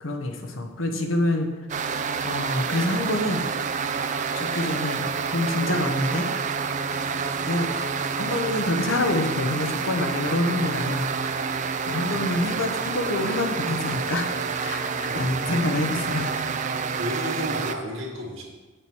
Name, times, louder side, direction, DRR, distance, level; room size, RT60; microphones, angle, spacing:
voice 1, 0.0-1.5 2.2-3.5 4.3-6.3 7.5-7.7 8.2-11.1 11.9-14.3 14.6-16.3, left 1 dB, 75° left, 4 dB, 1.1 m, -26 dB
sound 1, 1.7-17.7, right 5 dB, 35° right, 0.4 m, -28 dB
voice 2, 15.1-15.4 17.0-18.4, equal, 70° right, -2 dB, 2.2 m, -32 dB
8.0 x 6.6 x 4.5 m, 1.2 s
head